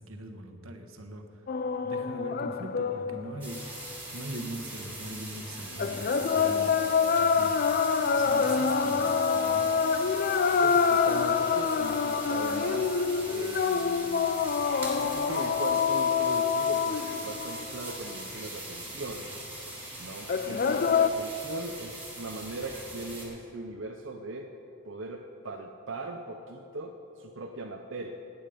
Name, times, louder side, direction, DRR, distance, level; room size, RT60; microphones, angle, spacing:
voice 1, 0.0-1.4 1.8-6.8 7.1-7.6 8.1-9.8, right 1 dB, 85° right, 4 dB, 1.4 m, -41 dB
sound 1, 1.5-4.0 5.8-18.1 20.3-21.1, left 6 dB, 45° left, 0.4 m, -26 dB
sound 2, 3.4-23.3, right 2 dB, 10° right, 3.1 m, -41 dB
voice 2, 10.6-14.2 15.0-19.3 20.0-24.5 24.8-28.1, right 2 dB, 60° right, 2 dB, 0.7 m, -39 dB
18.0 x 9.6 x 5.1 m, 2.8 s
head